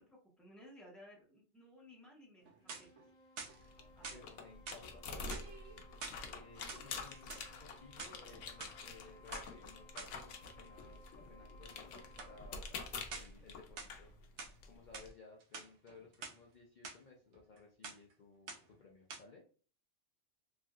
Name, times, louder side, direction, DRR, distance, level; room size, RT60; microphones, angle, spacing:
voice 1, 0.0-2.9 3.9-4.3, left 1 dB, ahead, -4 dB, 1.0 m, -58 dB
sound 1, 2.4-12.7, left 2 dB, 30° left, 0.9 m, -62 dB
sound 2, 2.4-3.0 3.4-4.2 4.7-4.9 5.2-6.2 6.6-7.5 7.9-8.7 9.3-9.5 10.0-10.2 12.2-12.4 13.1-13.4 13.8-14.6 14.9-15.1 15.4-16.4 16.8-17.0 17.3-17.6 17.8-18.1 18.5-18.8 19.1-19.2, right 4 dB, 75° right, 0.9 m, -48 dB
sound 3, 3.4-15.1, left 4 dB, 85° left, 0.9 m, -48 dB
voice 2, 4.1-5.9 6.2-14.1 14.6-19.4, left 3 dB, 50° left, -1 dB, 0.6 m, -58 dB
3.2 x 2.7 x 2.3 m, 0.40 s
omnidirectional pair, 1.2 m